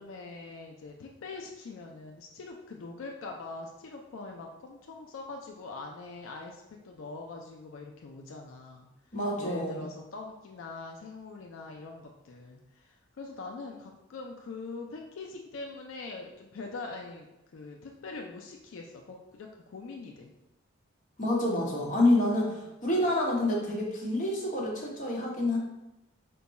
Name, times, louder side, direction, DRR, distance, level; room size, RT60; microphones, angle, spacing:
voice 1, 0.0-17.3 17.5-20.3 22.3-22.7, left 3 dB, 85° left, 1 dB, 0.4 m, -43 dB
voice 2, 9.1-9.9 21.2-25.6, left 1 dB, 40° left, -4 dB, 1.0 m, -27 dB
4.5 x 2.2 x 4.0 m, 0.93 s
head